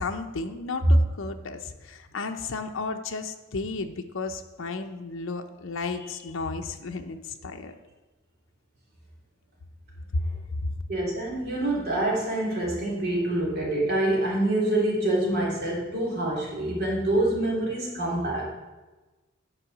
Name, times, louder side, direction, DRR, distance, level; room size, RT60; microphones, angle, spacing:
voice 1, 0.0-7.7 10.1-10.3, left 3 dB, 65° left, 5 dB, 0.7 m, -33 dB
voice 2, 10.9-18.5, right 1 dB, 50° right, -4 dB, 2.8 m, -26 dB
10.0 x 4.8 x 6.0 m, 1.2 s
head